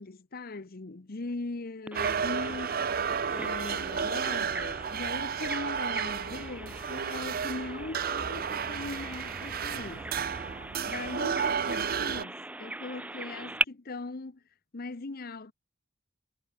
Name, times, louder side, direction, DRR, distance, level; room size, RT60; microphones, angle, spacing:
voice 1, 0.0-10.3 10.9-14.4 14.7-15.5, left 3 dB, 50° left, 0.8 m, -40 dB
Bird vocalization bird call bird song, 1.9-13.6, right 2 dB, 5° right, 0.5 m, -39 dB
sound 1, 1.9-12.2, right 7 dB, 50° right, 0.6 m, -32 dB
head